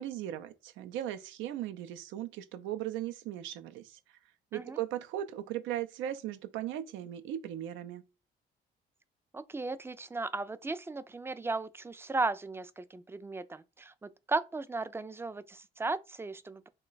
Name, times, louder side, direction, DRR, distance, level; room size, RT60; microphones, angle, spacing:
voice 1, 0.0-4.0 4.5-8.0, right 12 dB, 85° right, 0.5 m, -38 dB
voice 2, 9.3-16.7, right 3 dB, 10° right, 0.3 m, -36 dB
3.1 x 2.3 x 3.8 m
cardioid pair, 85°, 19 cm